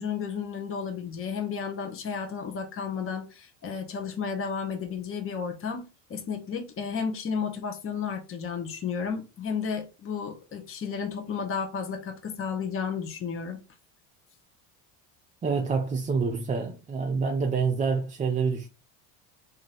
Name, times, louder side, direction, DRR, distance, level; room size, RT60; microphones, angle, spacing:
voice 1, 0.0-13.6, left 6 dB, 30° left, 0.9 m, -33 dB
voice 2, 15.4-18.7, right 5 dB, 20° right, 0.4 m, -27 dB
3.0 x 2.7 x 4.0 m
supercardioid pair, 95°, 46 cm